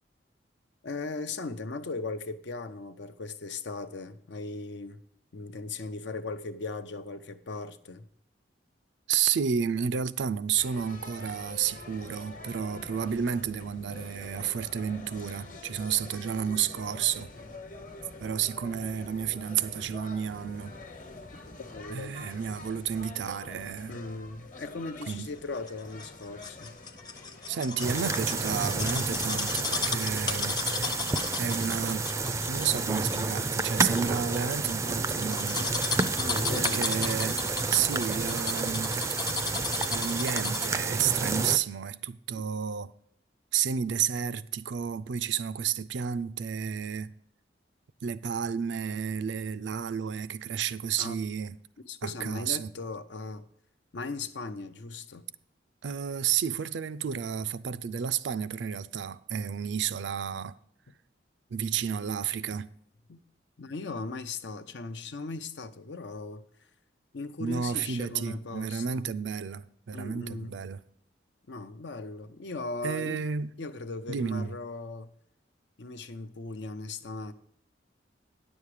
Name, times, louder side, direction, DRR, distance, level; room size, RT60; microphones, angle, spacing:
voice 1, 0.8-5.0 5.3-8.1 21.7-22.2 23.9-26.7 36.2-36.9 38.2-38.6 42.3-42.4 51.0-51.2 51.9-53.5 53.9-55.2 63.1-63.2 63.6-66.4 67.1-69.0 69.9-70.6 71.5-73.2 73.6-75.1 75.8-77.3, left 3 dB, 75° left, 0.7 m, -38 dB
voice 2, 9.1-17.3 18.2-20.7 21.9-24.0 25.1-25.3 27.5-30.5 31.4-32.1 32.5-35.7 36.5-37.4 37.7-39.0 39.9-42.9 43.5-47.1 48.0-51.6 52.0-52.7 55.8-60.6 61.5-62.7 67.4-70.8 72.8-73.5 74.1-74.6, right 7 dB, 80° right, 0.4 m, -31 dB
sound 1, 10.6-29.8, left 2 dB, 45° left, 1.1 m, -46 dB
sound 2, 25.7-40.8 41.2-41.3, left 4 dB, 20° left, 0.6 m, -35 dB
sound 3, 27.8-41.6, right 3 dB, 15° right, 0.4 m, -30 dB
9.9 x 7.2 x 4.8 m
head